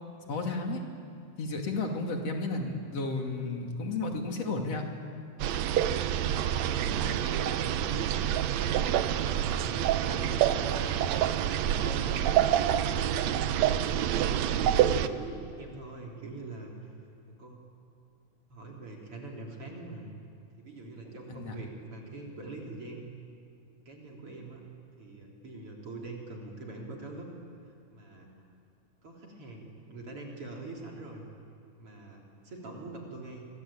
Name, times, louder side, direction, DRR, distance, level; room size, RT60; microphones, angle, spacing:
voice 1, 0.3-0.8 1.4-4.8 21.4-21.6, left 3 dB, 55° left, 2 dB, 3.7 m, -32 dB
sound 1, 5.4-15.1, right 10 dB, 70° right, 1.9 m, -27 dB
voice 2, 6.5-7.9 8.4-12.6 12.9-16.9 17.3-17.6 18.5-20.1 20.6-23.1 23.9-24.7 25.0-27.3 27.9-28.3 29.0-31.2 31.8-33.5, right 2 dB, 45° right, -1 dB, 4.3 m, -43 dB
26.0 x 24.5 x 8.8 m, 2.4 s
omnidirectional pair, 3.5 m